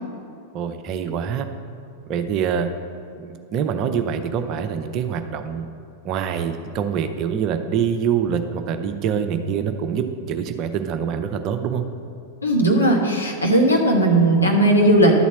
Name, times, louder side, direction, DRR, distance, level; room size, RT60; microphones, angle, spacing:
voice 1, 0.5-1.5 2.1-2.7 3.2-5.7 6.0-11.8, right 7 dB, 40° right, 7 dB, 0.7 m, -25 dB
voice 2, 12.4-15.2, right 1 dB, 80° left, 0 dB, 1.4 m, -17 dB
11.0 x 4.1 x 7.4 m, 2.5 s
figure-of-eight pair, 90°, 0 cm